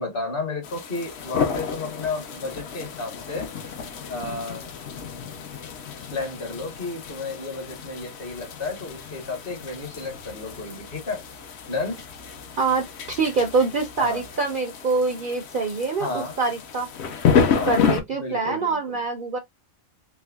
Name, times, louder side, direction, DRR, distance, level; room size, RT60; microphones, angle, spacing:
voice 1, 0.0-3.5 4.1-4.7 6.1-11.2 11.7-12.0 14.0-14.3 16.0-16.4 17.5-17.8 18.1-19.0, left 3 dB, 45° left, 1.2 m, -32 dB
sound 1, 0.6-18.0, left 6 dB, 60° left, 0.8 m, -30 dB
voice 2, 12.6-16.9 17.7-19.4, right 4 dB, 55° right, 0.6 m, -25 dB
3.4 x 3.0 x 2.2 m
omnidirectional pair, 1.4 m